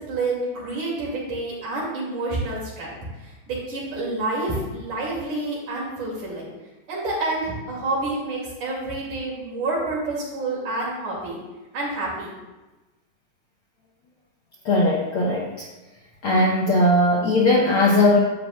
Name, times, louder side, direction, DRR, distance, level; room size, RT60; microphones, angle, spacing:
voice 1, 0.0-6.5 6.9-11.4 11.7-12.3, right 2 dB, 75° right, -5 dB, 3.9 m, -28 dB
voice 2, 14.6-15.7 16.2-18.2, left 1 dB, 75° left, -2 dB, 1.2 m, -19 dB
11.0 x 7.9 x 2.4 m, 1.1 s
omnidirectional pair, 3.6 m